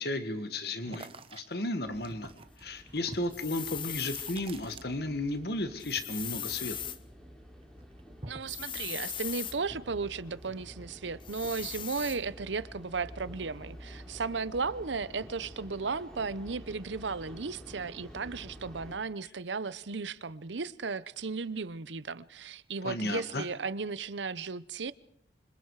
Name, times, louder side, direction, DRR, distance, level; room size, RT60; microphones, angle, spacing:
voice 1, 0.0-2.3 2.6-6.8 22.8-23.5, left 2 dB, 60° left, 1.6 m, -34 dB
sound 1, 0.9-5.4 5.6-7.3 7.6-8.6, right 2 dB, 30° right, 1.0 m, -48 dB
sound 2, 1.8-19.0, equal, 5° left, 3.8 m, -50 dB
sound 3, 3.3-4.4 5.8-7.0 8.5-9.6 11.2-12.2, left 10 dB, 25° left, 0.8 m, -39 dB
voice 2, 8.2-24.9, right 4 dB, 80° right, 0.8 m, -35 dB
26.0 x 26.0 x 4.9 m
head